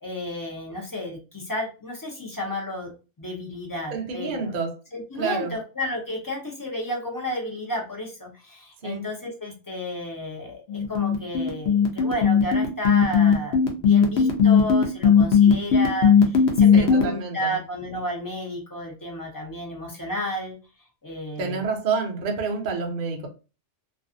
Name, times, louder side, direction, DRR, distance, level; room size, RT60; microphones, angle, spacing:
voice 1, 0.0-2.9 3.2-4.5 4.9-20.6 21.0-21.6, left 1 dB, 25° left, 0.5 m, -32 dB
voice 2, 3.9-4.8 5.2-5.5 8.8-9.0 16.7-17.6 21.4-23.3, right 4 dB, 55° right, 0.6 m, -28 dB
sound 1, 10.7-17.0, left 7 dB, 65° left, 0.8 m, -17 dB
2.4 x 2.4 x 2.5 m
omnidirectional pair, 1.3 m